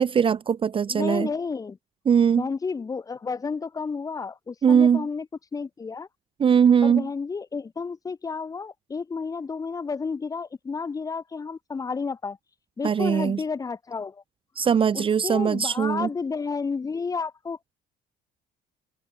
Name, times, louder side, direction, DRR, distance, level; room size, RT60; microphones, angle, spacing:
voice 1, 0.0-1.3 2.1-2.5 4.6-5.1 6.4-7.1 12.8-13.4 14.6-16.1, right 7 dB, 30° right, 0.5 m, -20 dB
voice 2, 0.9-1.8 2.4-5.3 5.5-6.1 6.8-12.4 12.8-14.2 14.9-17.7, left 5 dB, 20° left, 0.6 m, -31 dB
open air
cardioid pair, 110°, 17 cm